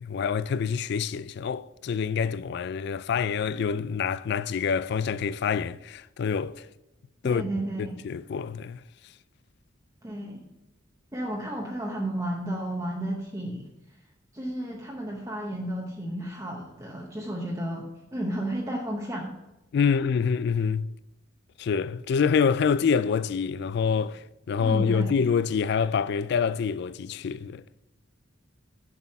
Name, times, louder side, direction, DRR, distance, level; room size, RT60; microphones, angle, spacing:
voice 1, 0.0-6.7 7.2-7.5 7.8-8.8 19.7-20.9 21.6-27.6, left 6 dB, 55° left, 0.3 m, -26 dB
voice 2, 7.2-8.0 10.0-10.4 11.1-13.7 14.3-17.8 18.1-19.3 24.6-25.2, right 1 dB, 15° right, 0.8 m, -32 dB
7.2 x 6.2 x 5.4 m
head